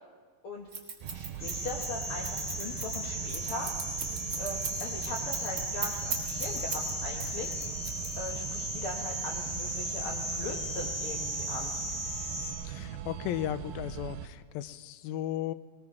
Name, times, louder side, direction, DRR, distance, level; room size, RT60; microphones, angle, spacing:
Scissors, 0.7-6.9 7.2-8.5, right 5 dB, 40° right, 1.2 m, -37 dB
sound 1, 1.0-14.3, right 10 dB, 90° right, 2.4 m, -41 dB
voice 1, 1.1-3.7 4.4-7.5 8.2-11.7, left 2 dB, 65° left, -1 dB, 1.3 m, -40 dB
sound 2, 1.4-12.5, equal, 45° left, 6.0 m, -36 dB
voice 2, 12.7-15.5, left 13 dB, 90° left, 13 dB, 2.4 m, -35 dB
20.0 x 19.5 x 3.6 m, 1.5 s
omnidirectional pair, 4.1 m